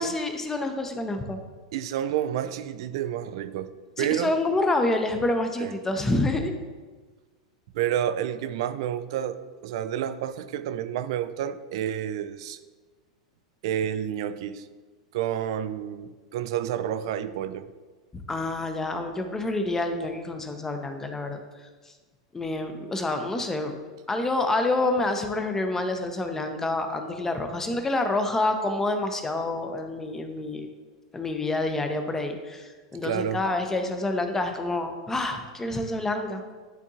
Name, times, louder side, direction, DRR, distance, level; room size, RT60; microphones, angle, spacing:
voice 1, 0.0-1.4 4.0-6.5 18.1-21.4 22.3-23.8 24.1-30.7 31.1-36.4, left 2 dB, 15° left, 6 dB, 0.7 m, -27 dB
voice 2, 1.7-3.7 4.0-4.3 5.6-5.7 7.7-12.6 13.6-14.7 15.1-17.7 33.0-33.4, right 10 dB, 60° right, 13 dB, 0.4 m, -29 dB
10.5 x 3.5 x 2.8 m, 1.4 s
hypercardioid pair, 95°, 3 cm